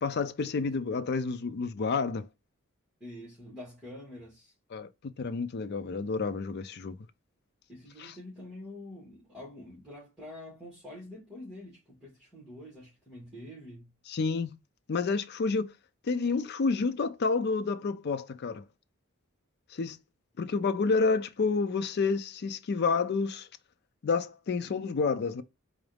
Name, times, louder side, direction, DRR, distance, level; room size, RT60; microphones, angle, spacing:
voice 1, 0.0-2.3 4.7-4.9 5.2-7.0 8.0-8.1 14.1-14.6 14.9-15.7 16.0-18.6 19.7-20.0 20.4-23.5 24.0-25.4, left 4 dB, 55° left, 0.4 m, -29 dB
voice 2, 3.0-4.5 7.7-13.9, left 1 dB, 5° right, 1.8 m, -46 dB
3.9 x 2.6 x 3.2 m
head